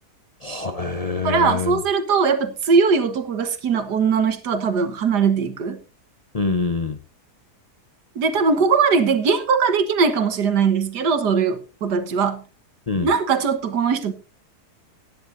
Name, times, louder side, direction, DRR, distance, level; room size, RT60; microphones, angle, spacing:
voice 1, 0.4-1.8 6.3-7.0 12.9-13.1, left 4 dB, 35° left, 0.7 m, -25 dB
voice 2, 1.2-5.8 8.2-12.4 13.0-14.1, right 5 dB, 85° right, 1.9 m, -20 dB
18.5 x 10.5 x 2.6 m
omnidirectional pair, 1.7 m